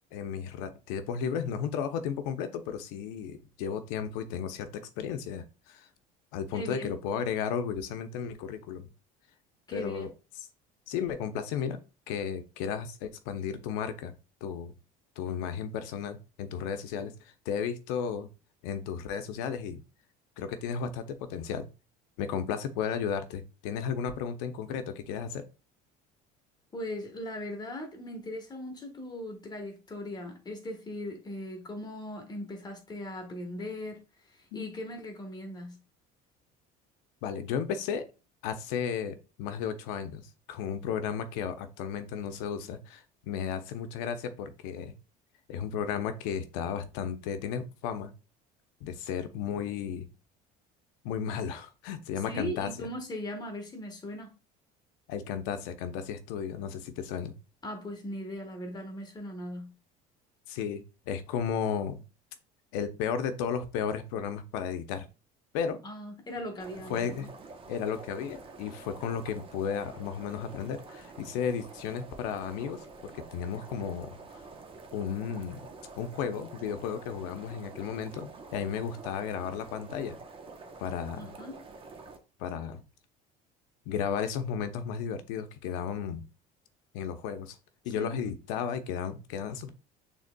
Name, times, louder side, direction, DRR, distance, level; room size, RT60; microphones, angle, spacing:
voice 1, 0.1-5.9 6.3-8.9 9.7-10.1 10.9-11.8 12.1-14.1 14.4-14.7 15.2-17.1 17.5-18.3 18.6-19.8 20.4-21.7 22.2-25.4 34.5-34.7 37.2-38.1 38.4-44.9 45.5-48.1 48.8-50.1 51.0-52.7 55.1-57.3 60.5-62.0 62.7-65.1 65.5-65.8 66.9-67.3 67.7-74.4 74.9-75.6 76.0-80.2 80.8-81.3 82.4-82.8 83.9-86.2 86.9-87.6 87.8-89.7, left 7 dB, 85° left, 0.7 m, -34 dB
voice 2, 6.5-7.0 9.7-10.1 26.7-35.8 52.3-54.3 57.6-59.7 65.8-67.3 81.1-81.5 87.9-88.2, left 1 dB, 20° left, 1.3 m, -39 dB
sound 1, 66.6-82.2, right 3 dB, 30° right, 0.9 m, -48 dB
6.4 x 3.5 x 2.2 m
cardioid pair, 110°, 18 cm